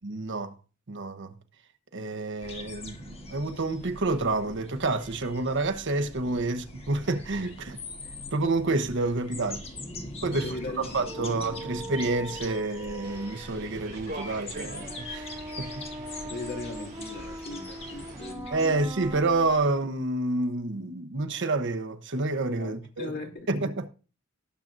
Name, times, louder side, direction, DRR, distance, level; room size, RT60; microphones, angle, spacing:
voice 1, 0.0-0.5 0.9-1.3 1.9-7.8 8.3-9.6 10.2-15.7 18.5-23.1 23.5-23.9, right 2 dB, 55° right, 1.0 m, -29 dB
sound 1, 2.4-19.6, left 2 dB, 25° left, 1.6 m, -43 dB
voice 2, 10.3-12.4 16.2-18.8 22.6-23.5, left 2 dB, 50° left, 2.3 m, -40 dB
sound 2, 10.3-19.7, right 1 dB, 15° right, 0.5 m, -42 dB
sound 3, 13.0-18.3, right 3 dB, 40° right, 6.1 m, -45 dB
18.0 x 7.4 x 2.6 m
head